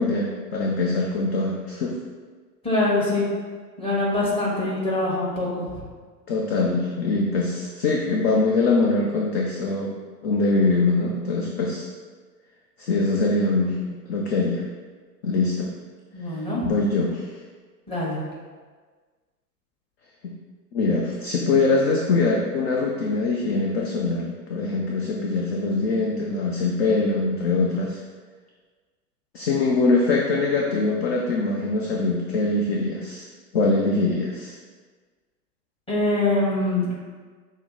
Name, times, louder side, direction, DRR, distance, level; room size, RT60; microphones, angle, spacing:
voice 1, 0.0-1.9 6.3-9.9 10.2-11.9 12.8-13.8 14.1-14.6 15.2-15.7 16.3-16.4 16.6-17.3 20.7-28.0 29.3-33.3 33.5-34.5, left 3 dB, 40° left, -1 dB, 0.5 m, -23 dB
voice 2, 2.6-3.3 3.8-5.8 16.1-16.6 17.9-18.2 35.9-37.0, left 2 dB, 10° left, -6 dB, 1.2 m, -24 dB
5.9 x 2.1 x 3.7 m, 1.5 s
figure-of-eight pair, 100°, 50 cm